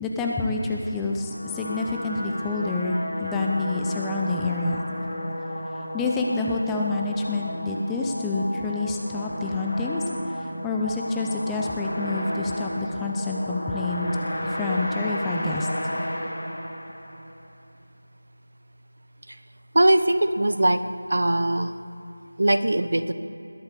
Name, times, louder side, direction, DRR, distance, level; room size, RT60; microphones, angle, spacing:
voice 1, 0.0-4.8 5.9-10.0 10.3-14.1 14.4-15.7, left 3 dB, 5° left, -1 dB, 0.5 m, -28 dB
sound 1, 1.0-17.3, left 1 dB, 45° left, 2.7 m, -33 dB
voice 2, 19.7-20.8 21.1-21.7 22.4-23.1, right 1 dB, 70° right, 11 dB, 0.8 m, -20 dB
20.0 x 8.0 x 6.8 m, 3.0 s
figure-of-eight pair, 175°, 0 cm